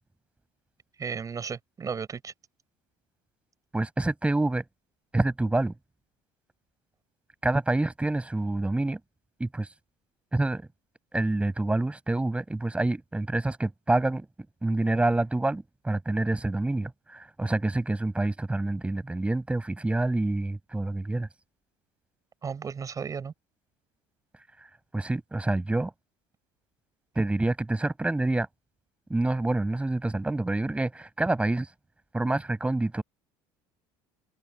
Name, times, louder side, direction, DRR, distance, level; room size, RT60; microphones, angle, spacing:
voice 1, 1.0-2.3 22.4-23.3, right 6 dB, 30° right, 5.8 m, -34 dB
voice 2, 3.7-4.6 5.1-5.7 7.4-9.0 9.4-9.7 10.3-10.7 11.1-14.3 14.6-21.3 24.9-25.9 27.1-28.5 29.1-31.7 32.1-33.0, right 2 dB, 10° right, 6.4 m, -27 dB
supercardioid pair, 90°, 11 cm